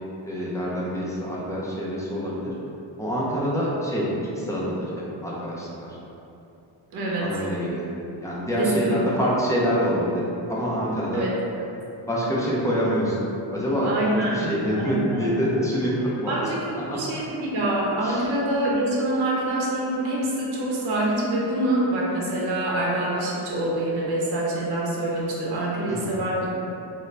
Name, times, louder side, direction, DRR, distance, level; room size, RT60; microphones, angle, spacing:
voice 1, 0.2-2.5 3.0-4.1 4.4-6.0 7.2-7.8 8.2-10.2 10.5-11.3 12.1-13.2 13.5-13.9 14.2-16.4 16.9-17.0 18.0-18.3 25.9-26.2, equal, 5° left, -7 dB, 0.4 m, -26 dB
voice 2, 6.9-7.3 8.6-9.0 11.1-11.3 13.8-15.3 16.3-16.6 16.9-26.5, right 1 dB, 55° right, -4 dB, 0.8 m, -25 dB
3.7 x 2.1 x 3.2 m, 2.8 s
cardioid pair, 145°, 48 cm